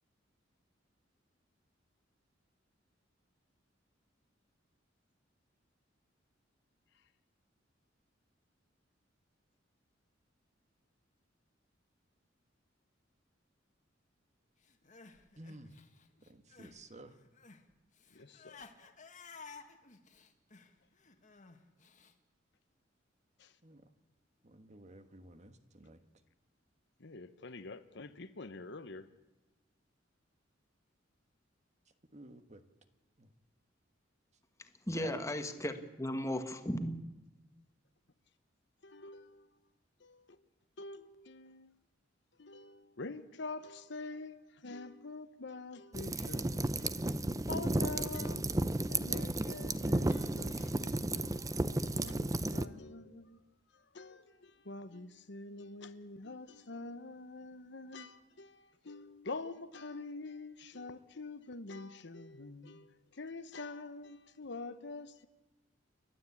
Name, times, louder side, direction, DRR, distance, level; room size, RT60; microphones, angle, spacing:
Crying sobbing, 14.6-16.8 17.1-22.1, left 4 dB, 40° left, 1.8 m, -55 dB
voice 1, 15.4-15.7 16.2-17.2 23.6-23.9 24.4-26.0 32.1-32.6 33.2-33.3 34.9-35.2, right 1 dB, 40° right, 1.4 m, -52 dB
voice 2, 18.1-18.6 23.4-23.6 27.0-29.1 38.8-39.7 40.0-40.4 40.8-41.7 42.3-53.4 53.7-65.3, left 3 dB, 65° left, 1.1 m, -46 dB
voice 3, 34.9-37.0, left 1 dB, 15° left, 1.6 m, -36 dB
sound 1, 45.9-52.7, right 2 dB, 15° right, 0.6 m, -33 dB
29.5 x 12.5 x 8.5 m
head